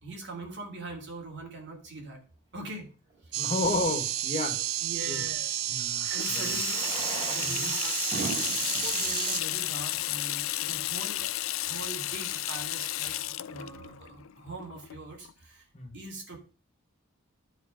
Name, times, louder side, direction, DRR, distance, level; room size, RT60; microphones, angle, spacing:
voice 1, 0.0-2.2 2.5-2.9 4.8-5.6 6.1-6.9 7.3-15.6 15.9-16.4, right 3 dB, 55° right, 2 dB, 3.3 m, -42 dB
Fireworks, 3.1-3.2 5.5-5.6 6.6-10.4 11.1-11.2 11.4-11.5 11.7-11.8 12.4-12.6, right 3 dB, 30° right, 5.5 m, -41 dB
sound 1, 3.3-9.4, right 13 dB, 75° right, 0.5 m, -31 dB
voice 2, 3.4-4.6 5.0-5.2 5.7-6.6 7.4-7.7 15.7-15.9, left 2 dB, 30° left, 3 dB, 1.9 m, -32 dB
Water tap faucet / Sink (filling or washing), 6.0-15.3, left 15 dB, 65° left, 0.4 m, -33 dB
11.5 x 4.7 x 5.3 m, 0.35 s
head